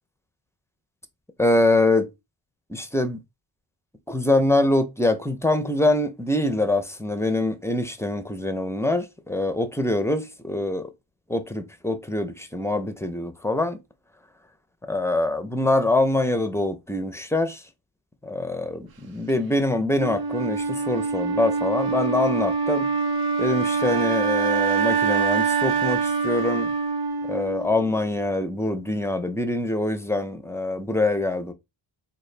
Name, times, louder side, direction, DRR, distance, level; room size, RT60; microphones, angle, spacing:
voice 1, 1.4-2.1 2.7-3.2 4.1-10.9 11.3-13.8 14.9-17.6 18.2-22.9 23.4-26.7 27.3-31.5, left 2 dB, 5° left, 0.5 m, -24 dB
Wind instrument woodwind instrument, 20.0-28.0, right 5 dB, 50° right, 0.6 m, -24 dB
3.7 x 2.5 x 3.2 m
cardioid pair, 75°, 46 cm